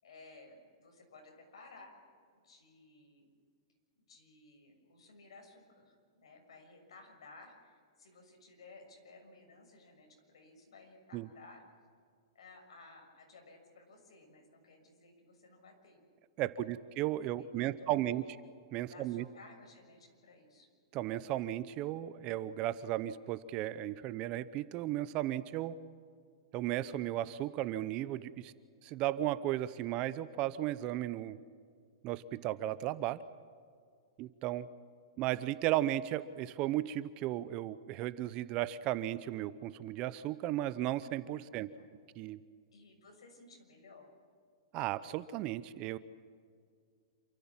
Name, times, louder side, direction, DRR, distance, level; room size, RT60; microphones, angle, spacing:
voice 1, 0.0-1.9 2.4-3.2 4.1-11.6 12.3-16.0 16.4-16.8 17.4-18.3 18.9-20.7 41.4-42.0 42.7-44.1, left 3 dB, 85° left, 3 dB, 6.7 m, -57 dB
voice 2, 16.4-18.2 18.7-19.2 20.9-25.8 26.5-28.5 28.8-31.4 32.0-33.2 34.2-34.7 35.2-41.7 42.2-42.4 44.7-46.0, right 14 dB, 30° right, 15 dB, 0.7 m, -35 dB
28.0 x 14.5 x 7.4 m, 2.2 s
hypercardioid pair, 160°, 3 cm